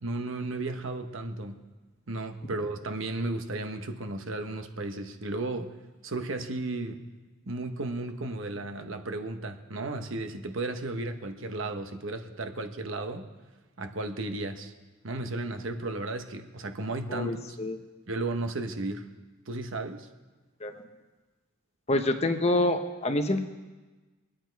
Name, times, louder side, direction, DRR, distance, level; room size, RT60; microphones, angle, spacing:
voice 1, 0.0-1.6 2.1-5.8 6.0-7.1 7.5-13.3 13.8-14.7 15.0-17.6 18.1-19.1 19.5-20.1, right 2 dB, 65° right, 6 dB, 1.0 m, -34 dB
voice 2, 17.1-17.8 20.6-20.8 21.9-23.4, left 1 dB, 30° left, 7 dB, 0.8 m, -27 dB
23.0 x 8.9 x 4.6 m, 1.2 s
head